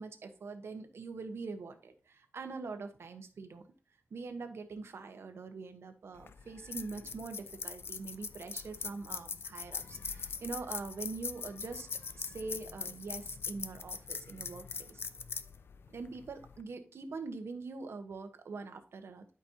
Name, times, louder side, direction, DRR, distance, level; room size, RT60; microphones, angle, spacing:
voice 1, 0.0-3.7 4.1-11.9 12.1-15.0 15.9-19.3, right 4 dB, 80° right, 7 dB, 1.2 m, -43 dB
sound 1, 6.2-16.6, left 5 dB, 65° left, 0.6 m, -42 dB
12.0 x 5.3 x 2.9 m, 0.37 s
wide cardioid pair, 145°, 4 cm